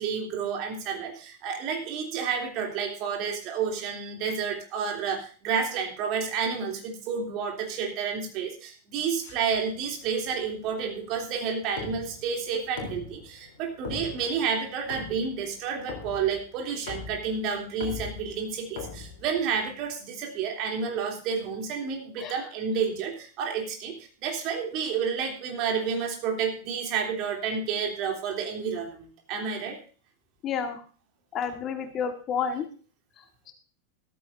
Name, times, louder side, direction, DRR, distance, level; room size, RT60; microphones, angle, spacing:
voice 1, 0.0-24.0 24.2-29.8, right 6 dB, 40° right, 2 dB, 3.2 m, -30 dB
sound 1, 9.2-19.9, left 5 dB, 55° left, 3.6 m, -43 dB
voice 2, 30.4-30.8 31.3-32.7, left 7 dB, 30° left, 6 dB, 1.6 m, -30 dB
14.0 x 13.5 x 2.7 m, 0.39 s
figure-of-eight pair, 90°, 0 cm